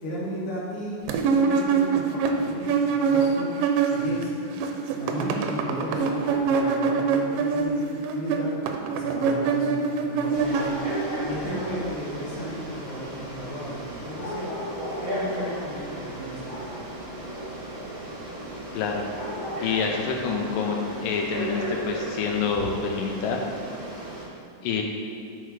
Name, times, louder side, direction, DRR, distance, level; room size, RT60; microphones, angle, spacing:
voice 1, 0.0-1.0 1.3-3.6 3.9-4.6 4.9-8.5 8.9-10.8 11.2-14.6 15.0-16.7, right 1 dB, 60° left, -6 dB, 0.7 m, -35 dB
sound 1, 1.1-4.2 4.5-11.2, right 5 dB, 85° right, 2.3 m, -24 dB
sound 2, 6.2-7.1 10.5-11.9 14.1-15.8 16.4-16.8 19.1-20.5, left 1 dB, 45° left, 2.3 m, -37 dB
Frog, 10.3-24.2, right 1 dB, 40° right, 1.3 m, -36 dB
voice 2, 18.7-19.1 19.6-23.4 24.6-24.8, left 5 dB, 85° left, 1 dB, 2.3 m, -27 dB
9.2 x 4.4 x 4.9 m, 2.3 s
omnidirectional pair, 3.8 m